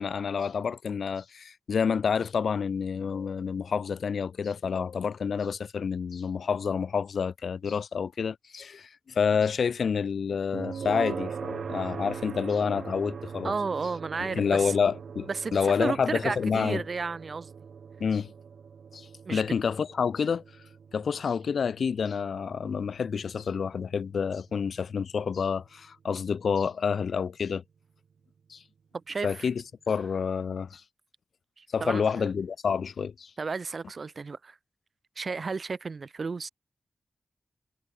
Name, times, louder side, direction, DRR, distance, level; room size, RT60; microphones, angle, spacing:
voice 1, 0.0-13.5 14.3-16.8 18.0-18.3 18.9-20.4 20.9-27.6 28.5-28.6 29.2-30.8 31.7-33.3, left 6 dB, 70° left, 2.8 m, -28 dB
sound 1, 10.5-25.5, right 6 dB, 70° right, 2.1 m, -41 dB
voice 2, 13.4-14.7 15.3-17.5 19.2-19.4 29.1-29.5 31.6-32.3 33.4-34.6 35.2-36.5, right 4 dB, 45° right, 1.3 m, -33 dB
wide cardioid pair, 165°, 0 cm